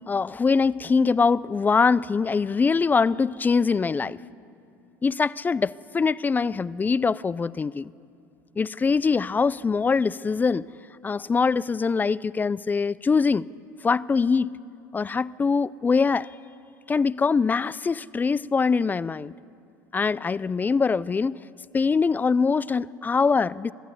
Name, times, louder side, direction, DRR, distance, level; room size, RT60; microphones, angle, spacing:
voice 1, 0.1-4.2 5.0-7.9 8.6-10.7 11.0-13.5 13.8-14.6 14.9-16.3 16.9-19.4 19.9-21.4 21.7-23.7, left 5 dB, 20° left, 0.4 m, -23 dB
24.5 x 13.5 x 8.2 m
supercardioid pair, 90°, 9 cm